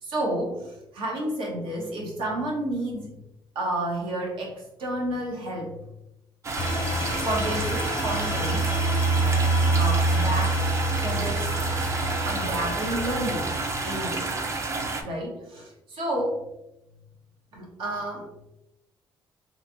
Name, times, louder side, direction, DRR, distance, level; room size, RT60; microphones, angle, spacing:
voice 1, 0.0-3.1 3.5-5.8 7.2-8.7 9.8-10.6 11.0-11.6 12.3-14.3 15.0-16.5 17.5-18.3, right 1 dB, 85° right, -1 dB, 0.9 m, -30 dB
sound 1, 6.4-15.0, right 3 dB, 35° right, 0.4 m, -30 dB
sound 2, 6.6-13.7, right 2 dB, 60° left, 0.5 m, -26 dB
3.0 x 2.5 x 2.7 m, 0.88 s
cardioid pair, 105°, 9 cm